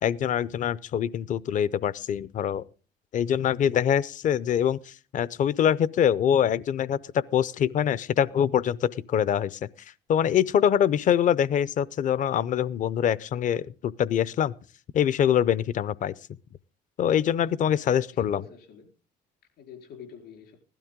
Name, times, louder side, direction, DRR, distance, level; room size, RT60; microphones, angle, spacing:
voice 1, 0.0-2.6 3.1-7.0 7.3-9.6 10.1-14.5 14.9-16.1 17.0-18.4, left 9 dB, 50° left, 0.5 m, -24 dB
voice 2, 17.4-18.9 19.6-20.6, left 6 dB, 75° left, 4.1 m, -47 dB
16.0 x 12.0 x 3.7 m
cardioid pair, 110°, 17 cm